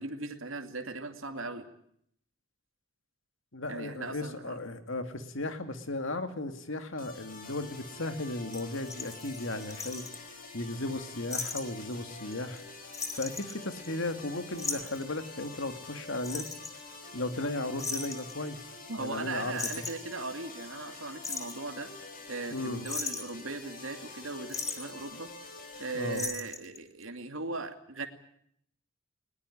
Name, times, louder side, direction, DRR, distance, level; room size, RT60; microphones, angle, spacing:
voice 1, 0.0-1.7 3.7-4.6 18.9-21.9 22.3-25.3 25.8-28.1, right 3 dB, 75° right, 6 dB, 2.4 m, -38 dB
voice 2, 3.5-10.1 10.5-12.6 13.1-16.5 17.1-18.7 19.0-19.6 22.5-22.8 25.9-26.3, left 2 dB, 70° left, 8 dB, 2.3 m, -35 dB
sound 1, 7.0-26.2, left 3 dB, 40° left, 5.6 m, -47 dB
sound 2, 8.5-10.2 11.3-11.6 11.9-12.0 12.3-12.6 12.9-14.1 14.6-15.0 16.2-16.8 17.8-18.3 19.2-19.3 19.5-20.1 20.9-21.6 22.3-22.6 22.9-23.4 24.5-24.9 26.1-26.8 27.0-27.1, left 4 dB, 15° left, 2.0 m, -37 dB
20.5 x 19.5 x 9.9 m, 0.70 s
head